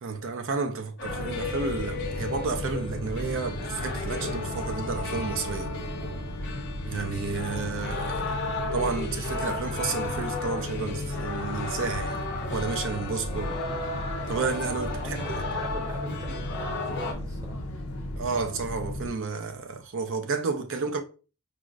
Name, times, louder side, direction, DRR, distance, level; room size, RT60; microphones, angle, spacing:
voice 1, 0.0-5.7 6.8-8.4 8.7-12.2 12.5-13.6 14.3-15.2 18.2-21.0, right 4 dB, 65° right, 0.5 m, -31 dB
sound 1, 1.0-19.1, left 1 dB, 90° left, 0.7 m, -35 dB
sound 2, 1.0-17.1, left 3 dB, 55° left, 0.6 m, -35 dB
voice 2, 13.5-13.8 15.0-17.6, equal, 15° right, 0.8 m, -41 dB
4.7 x 2.0 x 2.4 m
head